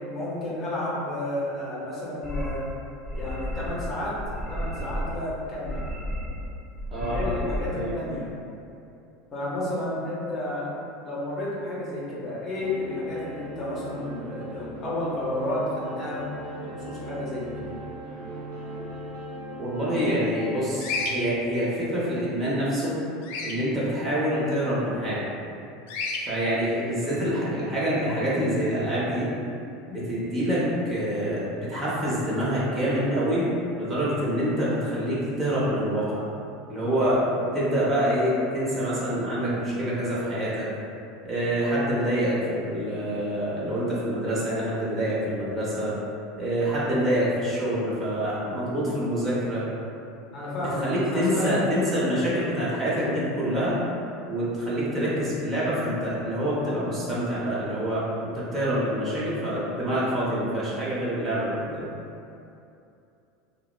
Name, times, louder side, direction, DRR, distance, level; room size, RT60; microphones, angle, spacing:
voice 1, 0.0-2.6 3.1-5.8 7.0-8.3 9.3-10.7 11.0-17.6 50.3-51.6, left 1 dB, 40° left, -7 dB, 0.7 m, -31 dB
sound 1, 2.2-2.6 3.0-3.9 4.1-5.2 5.5-6.5 6.8-7.6, left 1 dB, 5° left, 0.5 m, -32 dB
voice 2, 6.9-7.3 7.7-7.9 19.6-22.9 23.4-25.3 26.2-29.3 29.9-30.6 30.9-31.4 31.7-33.4 33.8-36.2 36.7-37.2 37.5-40.6 41.2-45.9 46.4-49.6 50.6-53.8 54.3-58.0 58.3-61.9, equal, 30° right, -8 dB, 0.9 m, -26 dB
sound 2, 12.6-21.1, right 1 dB, 70° right, 0.7 m, -39 dB
Bird vocalization bird call bird song, 20.8-21.1 23.2-23.6 25.9-26.2, left 4 dB, 70° left, 0.3 m, -29 dB
2.7 x 2.0 x 2.3 m, 2.7 s
hypercardioid pair, 85°, 0 cm